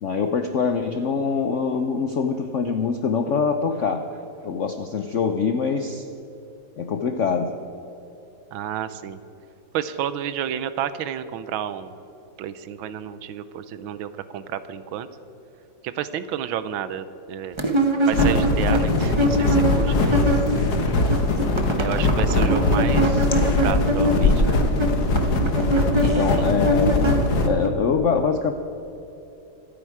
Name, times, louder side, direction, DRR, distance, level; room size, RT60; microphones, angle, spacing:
voice 1, 0.0-4.1 4.4-6.0 6.8-7.5 26.0-28.5, left 5 dB, 75° left, 6 dB, 0.7 m, -24 dB
voice 2, 8.5-9.2 9.7-11.9 12.4-15.1 15.8-17.6 18.1-20.1 21.8-24.6 26.0-26.4, right 9 dB, 85° right, 13 dB, 1.5 m, -31 dB
sound 1, 17.6-20.7 21.0-27.7, equal, 30° right, 0.5 m, -24 dB
sound 2, 18.1-27.5, left 2 dB, 55° left, 1.6 m, -21 dB
25.5 x 8.9 x 4.8 m, 2.9 s
omnidirectional pair, 2.2 m